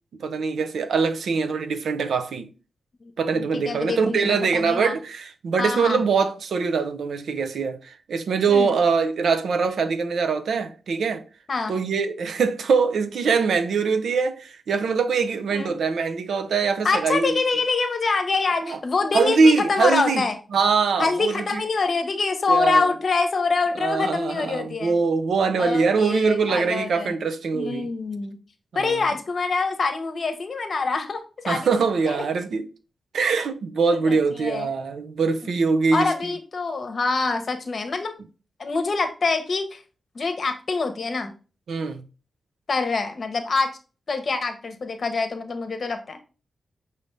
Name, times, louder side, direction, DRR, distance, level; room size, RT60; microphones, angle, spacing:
voice 1, 0.2-2.5 3.2-11.2 11.7-17.4 18.6-18.8 19.1-20.3 20.5-21.6 22.5-22.9 23.8-27.9 28.7-29.0 31.5-32.7 33.1-36.3 41.7-42.0, right 5 dB, 80° right, 0.5 m, -23 dB
voice 2, 3.3-4.9 5.6-6.0 8.5-8.8 11.5-11.7 15.5-15.7 16.8-20.3 21.0-25.0 25.6-27.1 27.5-28.4 28.7-31.7 32.1-32.2 33.9-34.7 35.9-38.1 38.6-39.8 40.1-41.3 42.7-43.7 44.1-46.2, left 4 dB, 60° left, 0.8 m, -25 dB
5.1 x 2.7 x 3.2 m
supercardioid pair, 40°, 0 cm